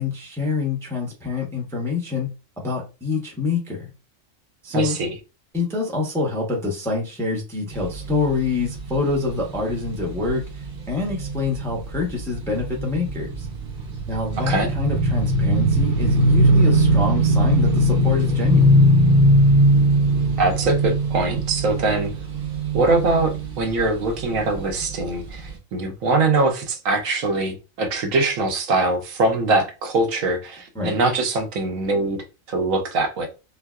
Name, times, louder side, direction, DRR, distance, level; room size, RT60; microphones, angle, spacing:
voice 1, 0.0-2.3 2.6-3.9 4.6-5.0 5.5-13.5 14.1-18.7 30.7-30.9, left 4 dB, 5° left, 0.6 m, -26 dB
voice 2, 4.7-5.1 14.4-14.7 20.4-22.1 22.7-33.3, right 2 dB, 80° right, 1.1 m, -22 dB
sound 1, 7.7-25.0 25.4-25.5, right 1 dB, 50° right, 0.8 m, -20 dB
4.3 x 2.0 x 2.3 m
omnidirectional pair, 1.4 m